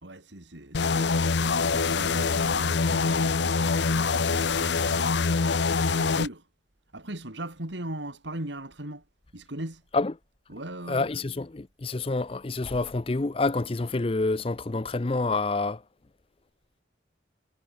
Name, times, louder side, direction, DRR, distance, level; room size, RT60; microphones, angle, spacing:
voice 1, 0.0-5.2 5.9-6.4 6.9-9.0 9.3-9.8 10.5-11.1, right 1 dB, 75° right, 3.6 m, -39 dB
sound 1, 0.7-6.3, left 4 dB, 70° left, 0.8 m, -24 dB
voice 2, 10.9-15.8, left 3 dB, 30° left, 0.5 m, -28 dB
head